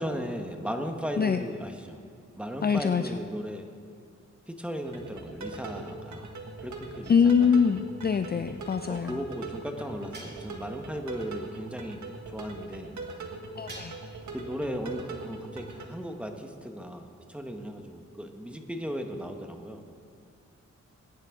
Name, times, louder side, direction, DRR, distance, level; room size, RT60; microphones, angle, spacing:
voice 1, 0.0-2.0 2.3-3.7 4.5-6.3 6.6-7.5 8.9-12.9 14.3-19.8, equal, 5° right, 4 dB, 1.3 m, -36 dB
voice 2, 2.6-3.0 7.1-9.1 13.6-13.9, left 6 dB, 35° left, 9 dB, 0.4 m, -24 dB
sound 1, 4.9-15.9, right 3 dB, 75° right, 1.6 m, -41 dB
sound 2, 7.0-7.7 10.1-10.9 13.7-14.4, right 2 dB, 35° right, 2.5 m, -48 dB
21.0 x 10.0 x 3.8 m, 2.3 s
cardioid pair, 75°, 29 cm